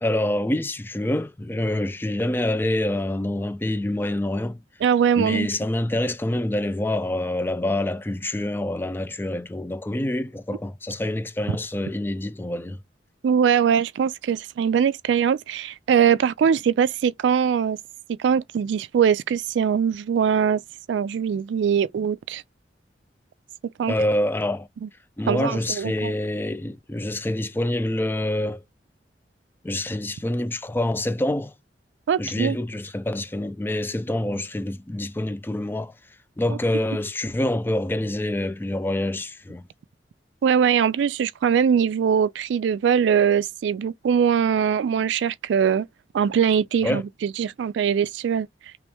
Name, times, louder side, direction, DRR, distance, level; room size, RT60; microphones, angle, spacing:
voice 1, 0.0-4.6 5.2-12.8 23.9-24.7 25.2-28.6 29.6-31.5 32.2-35.9 36.4-39.7 46.8-47.0, left 1 dB, 10° left, 0.4 m, -26 dB
voice 2, 4.8-5.5 13.2-17.8 18.2-20.6 20.9-22.4 23.8-23.9 24.8-24.9 25.3-26.1 32.1-32.6 40.4-45.9 46.1-48.5, right 7 dB, 75° right, 0.3 m, -22 dB
3.0 x 3.0 x 3.4 m
head